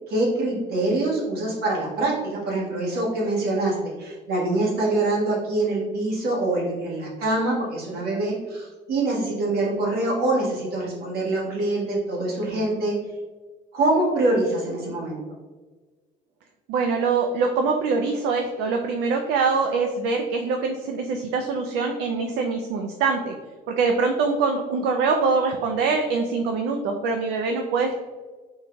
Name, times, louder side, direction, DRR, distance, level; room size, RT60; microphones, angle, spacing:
voice 1, 0.1-13.0 13.7-15.2, right 2 dB, 70° right, -4 dB, 1.5 m, -24 dB
voice 2, 16.7-23.3 23.7-28.0, right 4 dB, 85° right, 3 dB, 0.4 m, -24 dB
3.8 x 3.8 x 2.2 m, 1.3 s
cardioid pair, 110°, 17 cm